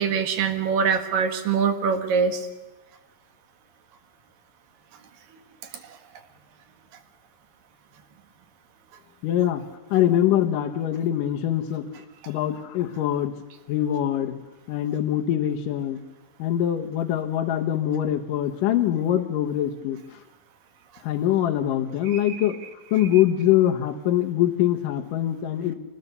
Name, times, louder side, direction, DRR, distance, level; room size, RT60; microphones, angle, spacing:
voice 1, 0.0-2.5 22.1-22.4, right 6 dB, 75° right, 7 dB, 3.4 m, -24 dB
voice 2, 9.2-9.6 9.9-11.8 12.3-13.3 13.7-14.3 14.7-16.0 16.4-20.2 21.0-22.6 22.9-25.7, left 11 dB, 75° left, 4 dB, 2.6 m, -23 dB
24.5 x 19.5 x 6.8 m, 1.1 s
omnidirectional pair, 4.0 m